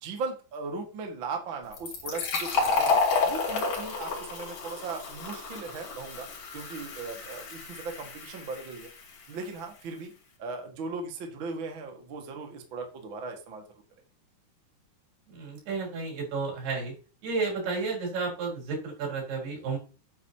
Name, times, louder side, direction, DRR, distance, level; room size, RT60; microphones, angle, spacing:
voice 1, 0.0-3.0 3.2-6.3 6.5-8.9 9.3-10.1 10.4-13.6, right 4 dB, 40° right, 3 dB, 1.9 m, -38 dB
Fill (with liquid), 1.7-9.1, left 4 dB, 60° left, 4.0 m, -30 dB
voice 2, 15.3-16.9 17.2-19.8, right 4 dB, 85° right, -1 dB, 6.1 m, -32 dB
10.0 x 8.1 x 2.9 m, 0.35 s
omnidirectional pair, 4.4 m